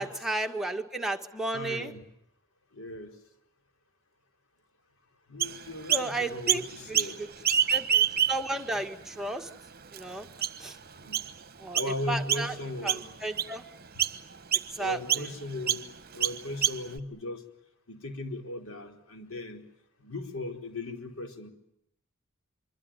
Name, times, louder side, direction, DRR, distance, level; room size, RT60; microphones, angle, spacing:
voice 1, 0.0-1.9 5.9-6.6 6.9-7.1 7.7-9.5 9.9-10.3 10.6-10.8 11.6-11.8 12.1-12.5 12.8-13.6 14.7-15.0, right 2 dB, ahead, 3 dB, 1.9 m, -33 dB
voice 2, 1.5-2.0 2.7-3.2 5.3-7.2 11.0-11.2 11.7-13.1 14.8-15.9 16.1-17.4 17.9-19.7 20.0-21.5, left 2 dB, 70° left, 5 dB, 4.6 m, -37 dB
Chirp tweet, 5.4-6.1 6.5-7.1 7.4-8.6 9.2-9.3 9.9-10.0 10.4-10.7 11.1-11.3 11.7-11.9 12.3-12.6 12.9-13.5 14.0-14.2 14.5-14.7 15.1-15.3 15.7-15.8 16.2-17.0, right 9 dB, 45° right, 1.1 m, -26 dB
25.5 x 24.5 x 9.1 m, 0.77 s
head